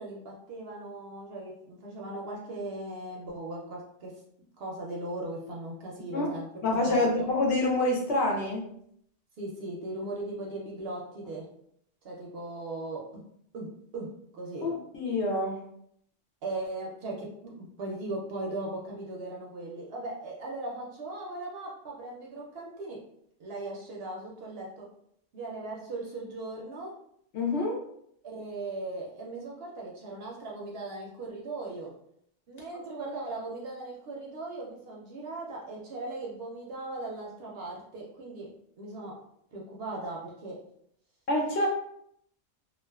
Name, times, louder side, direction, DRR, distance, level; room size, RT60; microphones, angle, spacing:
voice 1, 0.0-4.2 4.6-7.0 9.4-11.5 12.0-13.2 13.5-14.7 16.4-23.1 23.4-24.9 25.3-27.0 28.2-31.9 32.5-39.2 39.5-40.6, right 2 dB, 65° right, -2 dB, 0.7 m, -38 dB
voice 2, 6.6-8.6 14.6-15.6 27.3-27.8 41.3-41.7, left 2 dB, 65° left, -1 dB, 0.8 m, -27 dB
2.4 x 2.3 x 2.2 m, 0.70 s
omnidirectional pair, 1.3 m